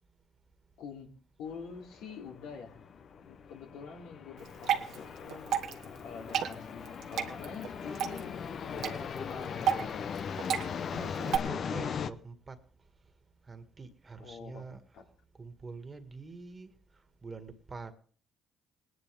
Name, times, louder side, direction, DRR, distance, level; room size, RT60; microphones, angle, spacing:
voice 1, 0.8-1.1 1.4-2.8 3.2-5.5 5.8-10.1 14.2-15.0, left 6 dB, 90° left, 3.0 m, -46 dB
sound 1, 1.5-12.1, left 7 dB, 55° left, 0.8 m, -39 dB
Water / Drip, 4.4-11.4, right 9 dB, 75° right, 1.5 m, -34 dB
voice 2, 10.9-12.6 13.5-14.8 15.4-16.7 17.2-17.9, right 4 dB, 30° right, 1.9 m, -45 dB
20.0 x 11.0 x 3.5 m
cardioid pair, 80°, 0 cm